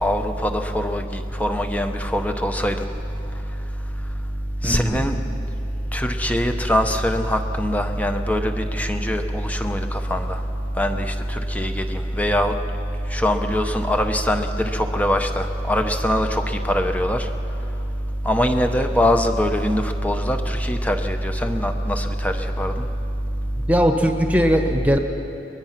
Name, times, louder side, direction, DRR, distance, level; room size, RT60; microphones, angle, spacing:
voice 1, 0.0-2.7 4.6-5.2 5.9-10.4 10.8-12.5 13.1-17.3 18.2-22.7, equal, 10° left, 6 dB, 0.9 m, -22 dB
voice 2, 4.6-5.0 23.7-25.0, equal, 10° right, 4 dB, 1.3 m, -19 dB
23.0 x 20.5 x 5.9 m, 2.9 s
head